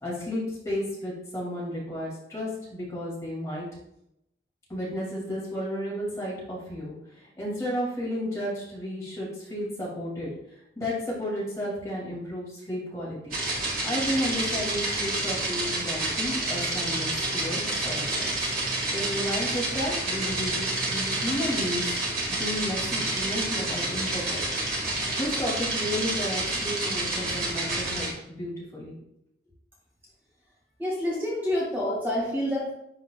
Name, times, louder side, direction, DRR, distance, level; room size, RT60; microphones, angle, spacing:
voice 1, 0.0-3.7 4.7-10.3 10.8-13.4 13.8-18.5 18.9-21.8 22.3-24.4 25.2-28.9, equal, 15° left, -6 dB, 2.1 m, -32 dB
sound 1, 13.3-28.1, right 2 dB, 50° right, 1.7 m, -29 dB
voice 2, 30.8-32.7, left 1 dB, 10° right, -7 dB, 1.7 m, -28 dB
10.5 x 4.0 x 2.2 m, 0.80 s
head